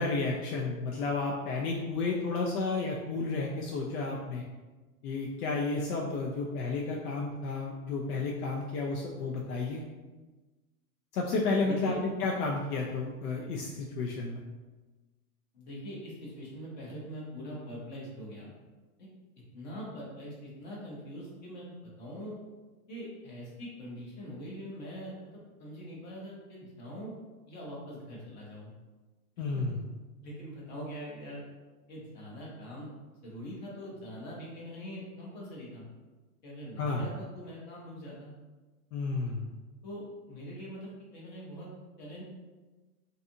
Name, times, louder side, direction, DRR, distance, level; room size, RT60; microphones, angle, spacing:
voice 1, 0.0-4.4 5.0-9.8 11.1-14.4 29.4-29.8 36.8-37.0 38.9-39.5, left 3 dB, 80° left, -1 dB, 0.6 m, -32 dB
voice 2, 11.6-12.0 15.5-18.6 19.0-19.1 19.5-22.4 22.9-27.1 27.5-28.7 29.4-29.8 30.2-31.4 31.9-32.9 33.2-35.9 36.4-38.3 39.8-41.7 42.0-42.2, equal, 30° left, -4 dB, 0.6 m, -43 dB
2.6 x 2.4 x 2.6 m, 1.2 s
supercardioid pair, 165°, 45 cm